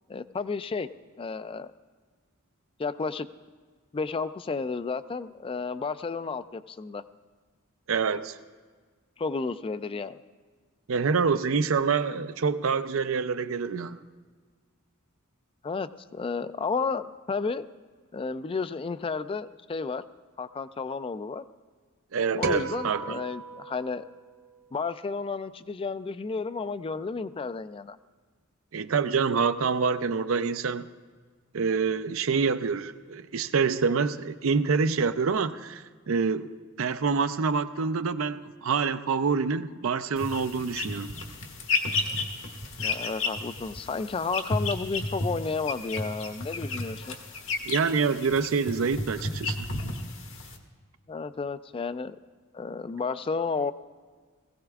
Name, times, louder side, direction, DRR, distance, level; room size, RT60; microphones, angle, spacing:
voice 1, 0.1-0.9 1.2-1.7 2.8-3.3 3.9-7.0 9.2-10.2 15.6-17.7 18.1-20.0 20.4-21.4 22.4-24.0 24.7-28.0 42.8-47.1 51.1-52.2 52.5-53.7, left 4 dB, 25° left, 14 dB, 0.3 m, -32 dB
voice 2, 7.9-8.4 10.9-14.0 22.1-23.2 28.7-30.9 31.5-41.1 47.7-49.7, right 5 dB, 70° right, 11 dB, 0.5 m, -26 dB
sound 1, 22.4-24.9, right 5 dB, 45° right, 1.0 m, -38 dB
sound 2, 40.2-50.6, left 3 dB, 70° left, 1.4 m, -33 dB
19.5 x 16.0 x 2.4 m, 1.5 s
head